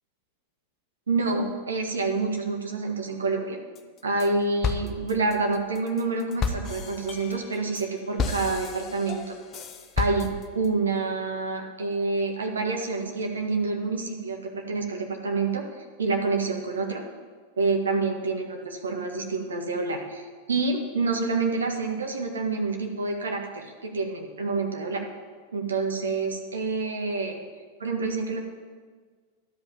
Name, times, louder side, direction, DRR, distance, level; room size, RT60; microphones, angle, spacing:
voice 1, 1.1-3.6 4.0-9.3 10.0-14.4 14.7-15.7 16.0-17.0 17.6-25.0 25.5-27.4 27.8-28.4, right 3 dB, 70° right, 2 dB, 1.6 m, -27 dB
sound 1, 3.8-4.3 4.6-10.7, left 4 dB, 30° left, 0.9 m, -32 dB
12.0 x 5.4 x 8.8 m, 1.5 s
figure-of-eight pair, 90°, 0 cm